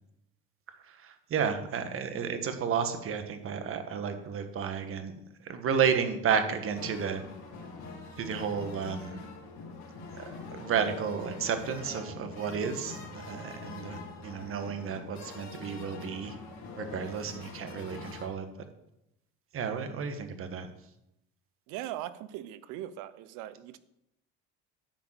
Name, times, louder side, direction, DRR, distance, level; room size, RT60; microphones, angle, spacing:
voice 1, 0.9-5.1 5.4-7.2 8.2-9.2 10.2-16.3 16.8-18.5 19.5-20.7, right 6 dB, 45° right, 8 dB, 1.4 m, -32 dB
sound 1, 6.7-18.3, left 3 dB, 60° left, 3.0 m, -44 dB
voice 2, 21.7-23.8, right 13 dB, 85° right, 15 dB, 0.7 m, -40 dB
10.5 x 5.1 x 7.5 m, 0.84 s
cardioid pair, 115°, 30 cm